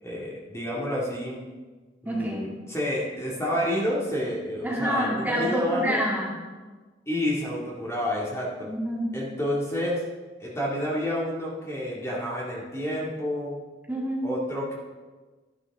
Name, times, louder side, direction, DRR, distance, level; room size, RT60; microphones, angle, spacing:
voice 1, 0.0-1.4 2.0-6.0 7.1-8.7 9.1-10.0 10.4-13.6 14.2-14.7, left 1 dB, 15° left, -5 dB, 2.2 m, -29 dB
voice 2, 2.1-2.5 4.6-6.3 8.6-9.1 13.9-14.3, equal, 10° right, -4 dB, 2.3 m, -27 dB
13.0 x 11.0 x 3.6 m, 1.3 s
head